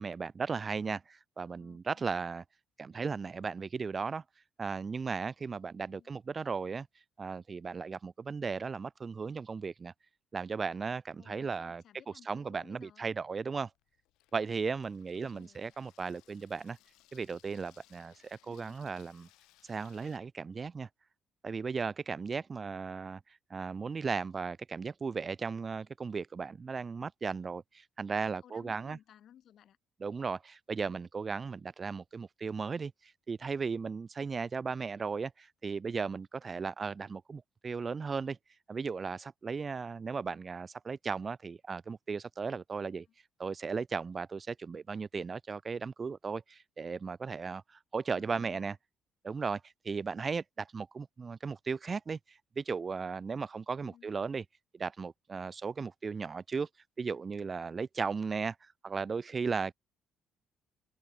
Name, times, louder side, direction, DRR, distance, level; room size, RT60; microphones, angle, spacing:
voice 1, 0.0-2.4 2.8-4.2 4.6-6.9 7.2-9.9 10.3-11.8 12.3-13.7 14.3-16.8 17.1-19.3 19.6-20.9 21.4-23.2 23.5-29.0 30.0-38.4 38.7-43.1 43.4-48.7 49.2-54.4 54.7-56.7 57.0-59.7, right 5 dB, 35° right, 0.5 m, -36 dB
voice 2, 1.5-2.1 5.9-6.1 11.2-13.1 15.1-15.7 18.4-18.8 28.4-29.8 30.7-31.0 43.1-43.2 48.1-48.7 53.8-54.1, left 10 dB, 60° left, 4.9 m, -59 dB
Water tap faucet / Sink (filling or washing), 13.2-20.2, left 18 dB, 90° left, 5.3 m, -66 dB
cardioid pair, 95°, 0 cm